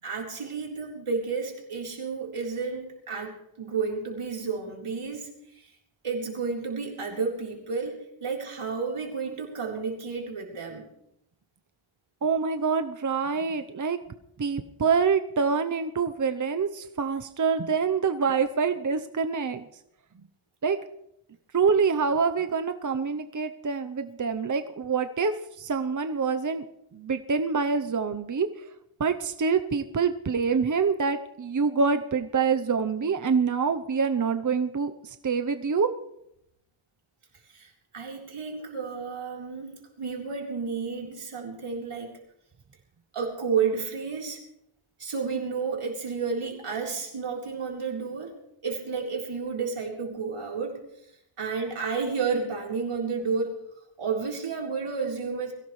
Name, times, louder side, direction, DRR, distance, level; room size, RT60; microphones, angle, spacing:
voice 1, 0.0-5.7 6.0-10.9 37.5-42.2 43.1-44.4 45.0-48.3 48.6-50.8 51.4-53.5 54.0-55.5, right 5 dB, 85° right, -1 dB, 4.1 m, -31 dB
voice 2, 12.2-14.0 14.4-19.7 20.6-20.8 21.5-26.6 26.9-28.5 29.0-35.9, right 5 dB, 40° right, 8 dB, 0.8 m, -26 dB
22.5 x 16.5 x 3.2 m, 0.78 s
wide cardioid pair, 75°, 50 cm